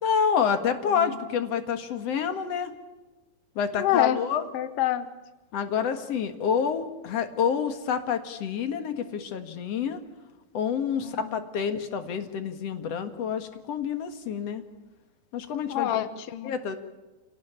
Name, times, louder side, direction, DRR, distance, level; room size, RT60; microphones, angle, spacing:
voice 1, 0.0-2.7 3.6-4.4 5.5-10.0 10.5-14.6 15.3-16.0 16.4-16.8, left 7 dB, 50° left, 9 dB, 2.3 m, -28 dB
voice 2, 0.8-1.2 3.7-4.2 4.5-5.1 11.0-11.4 15.7-16.5, left 12 dB, 85° left, 13 dB, 1.3 m, -27 dB
27.0 x 18.0 x 8.7 m, 1.1 s
omnidirectional pair, 4.3 m